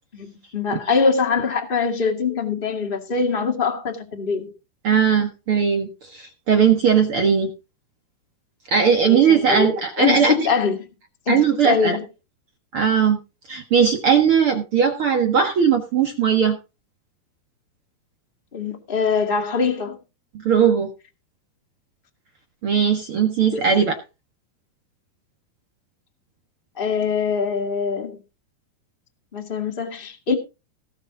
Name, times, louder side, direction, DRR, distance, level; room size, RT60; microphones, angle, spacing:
voice 1, 0.1-4.5 9.1-10.8 11.2-12.0 18.5-20.0 23.5-23.7 26.8-28.2 29.3-30.3, left 5 dB, 25° left, 1.1 m, -23 dB
voice 2, 4.8-7.5 8.7-10.5 11.3-12.0 12.7-13.2 13.5-16.6 20.4-20.9 22.6-24.0, right 7 dB, 60° right, 1.4 m, -18 dB
18.0 x 6.5 x 4.9 m
omnidirectional pair, 4.7 m